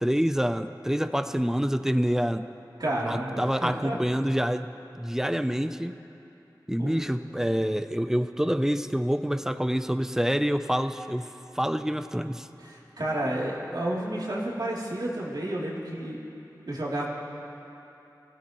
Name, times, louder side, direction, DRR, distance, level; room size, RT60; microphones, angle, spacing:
voice 1, 0.0-2.5 3.1-4.7 5.0-6.0 6.7-11.3 11.5-12.5, equal, 5° right, 10 dB, 0.6 m, -27 dB
voice 2, 2.8-4.0 6.8-7.1 12.6-16.2 16.6-17.1, right 1 dB, 65° right, -6 dB, 3.1 m, -31 dB
25.0 x 16.5 x 3.1 m, 2.9 s
wide cardioid pair, 60°, 8 cm